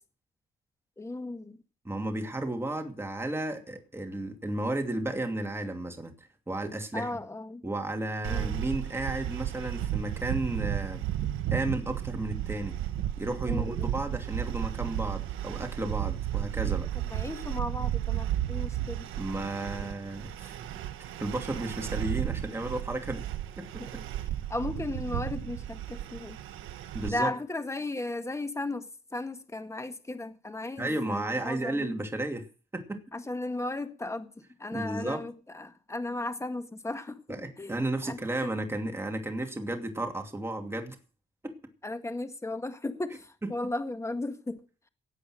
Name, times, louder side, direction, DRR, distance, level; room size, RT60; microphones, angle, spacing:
voice 1, 1.0-1.6 6.9-7.6 8.3-8.6 13.5-13.9 17.1-19.1 23.8-23.9 24.5-26.4 27.1-28.9 29.1-31.9 33.1-34.3 34.6-37.2 37.6-38.5 41.8-44.6, left 2 dB, 15° left, 1.7 m, -35 dB
voice 2, 1.8-6.1 6.5-7.2 7.6-11.0 11.5-12.8 13.2-16.9 19.2-20.6 21.2-23.2 23.6-24.0 26.9-27.3 30.8-32.4 32.7-33.0 34.7-35.3 37.3-41.0 41.4-41.5, right 1 dB, 10° right, 2.6 m, -33 dB
sound 1, 8.2-27.1, right 12 dB, 85° right, 1.4 m, -33 dB
17.5 x 8.4 x 6.4 m
cardioid pair, 90°, 20 cm